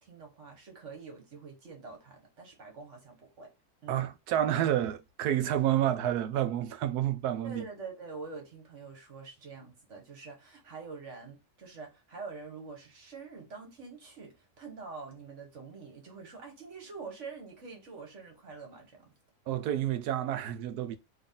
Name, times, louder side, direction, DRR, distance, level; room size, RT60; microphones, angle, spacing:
voice 1, 0.0-3.5 3.8-4.0 7.4-19.1, right 4 dB, 50° right, 1.8 m, -46 dB
voice 2, 3.9-7.7 19.5-21.0, right 11 dB, 90° right, 1.2 m, -29 dB
4.1 x 3.2 x 3.7 m
omnidirectional pair, 1.6 m